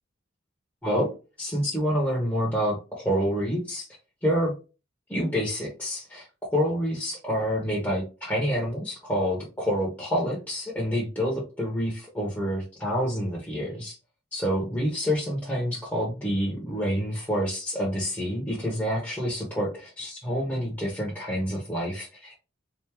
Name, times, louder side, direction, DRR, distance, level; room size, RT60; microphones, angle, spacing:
voice 1, 1.4-3.9 4.2-4.5 5.1-6.3 6.5-14.0 14.3-22.4, equal, 10° left, -4 dB, 1.0 m, -28 dB
3.5 x 2.6 x 3.1 m, 0.31 s
head